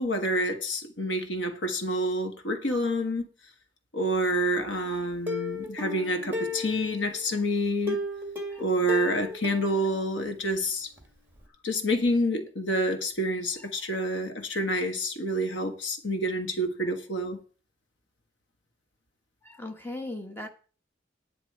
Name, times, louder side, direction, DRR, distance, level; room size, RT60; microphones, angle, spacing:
voice 1, 0.0-3.2 3.9-8.0 8.6-10.9 11.6-17.4, equal, 90° left, 1.6 m, -28 dB
Plucked string instrument, 5.3-7.2 7.9-10.7 11.0-11.1 11.4-11.5, left 2 dB, 10° right, 1.9 m, -35 dB
voice 2, 19.4-20.5, left 2 dB, 10° left, 1.3 m, -39 dB
10.0 x 9.8 x 4.7 m
head